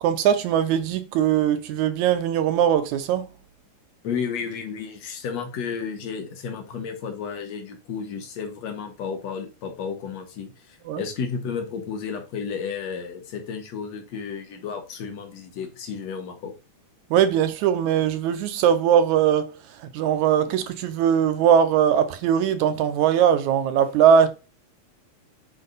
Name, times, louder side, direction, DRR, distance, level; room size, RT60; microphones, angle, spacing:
voice 1, 0.0-3.3 10.9-11.0 17.1-19.5 19.9-24.3, right 8 dB, 80° right, 2.2 m, -20 dB
voice 2, 4.0-16.5, left 6 dB, 65° left, 2.6 m, -32 dB
9.1 x 5.2 x 4.0 m
omnidirectional pair, 3.3 m